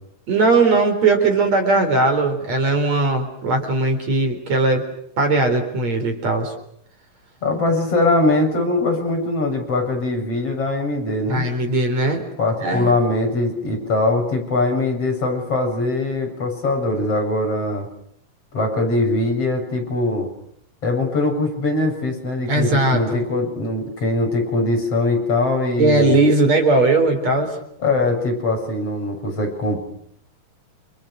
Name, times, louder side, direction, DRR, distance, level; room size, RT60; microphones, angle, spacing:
voice 1, 0.3-4.8 5.2-6.5 11.3-12.2 12.6-12.9 22.5-23.2 25.8-27.5, right 2 dB, 50° right, 6 dB, 5.1 m, -18 dB
voice 2, 7.4-11.5 12.4-17.9 18.5-20.3 20.8-26.2 27.8-29.8, left 2 dB, 40° left, 2 dB, 8.5 m, -21 dB
30.0 x 29.0 x 6.6 m, 0.71 s
omnidirectional pair, 4.0 m